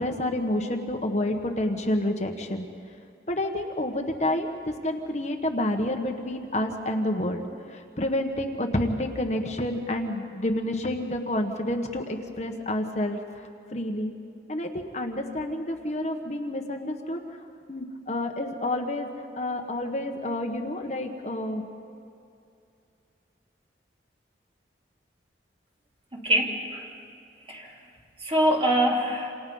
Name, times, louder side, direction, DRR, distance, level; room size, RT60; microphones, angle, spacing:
voice 1, 0.0-2.6 3.3-7.4 7.7-14.1 14.5-17.2 17.7-19.1 19.3-21.6, left 1 dB, 40° left, 3 dB, 1.4 m, -29 dB
voice 2, 26.1-26.9 27.5-27.7 28.2-29.3, right 1 dB, 30° right, -2 dB, 3.2 m, -24 dB
28.5 x 27.5 x 5.6 m, 2.5 s
head